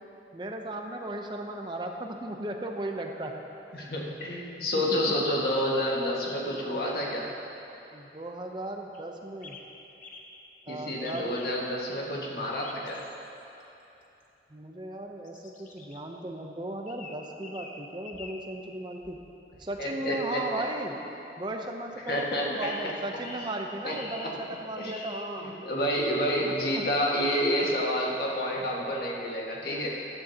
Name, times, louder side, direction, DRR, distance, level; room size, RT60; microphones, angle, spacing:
voice 1, 0.3-3.4 4.8-5.0 7.9-9.6 10.7-11.3 14.5-19.2 19.6-21.0 21.4-25.5 26.8-26.9, right 1 dB, 25° right, 2 dB, 0.7 m, -36 dB
voice 2, 3.7-7.2 10.7-13.0 19.8-20.4 22.1-22.9 23.8-23.9 24.8-25.0 25.4-29.9, equal, 60° left, -4 dB, 1.8 m, -29 dB
sound 1, 8.9-9.0 9.4-9.7 10.0-10.3 11.0-11.6 12.4-13.2 13.6-13.7 14.2-14.3 15.2-16.0 16.9-17.8 18.1-18.4 19.0-19.8 22.1-22.3 22.6-23.6 23.9-24.4 24.9-25.4 25.8-26.2, left 4 dB, 45° left, 0.9 m, -46 dB
14.5 x 12.5 x 2.9 m, 2.9 s
head